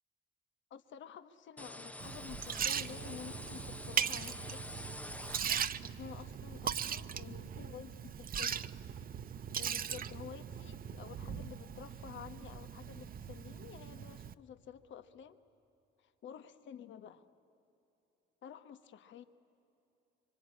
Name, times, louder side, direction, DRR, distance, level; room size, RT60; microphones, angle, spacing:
voice 1, 0.7-4.9 5.8-8.6 9.6-15.4 16.0-17.3 18.4-19.2, left 8 dB, 70° left, 11 dB, 1.2 m, -51 dB
sound 1, 1.6-5.9, left 1 dB, 5° left, 0.7 m, -47 dB
Liquid, 2.0-14.3, right 8 dB, 45° right, 0.7 m, -39 dB
25.0 x 24.5 x 9.7 m, 3.0 s
cardioid pair, 90°, 20 cm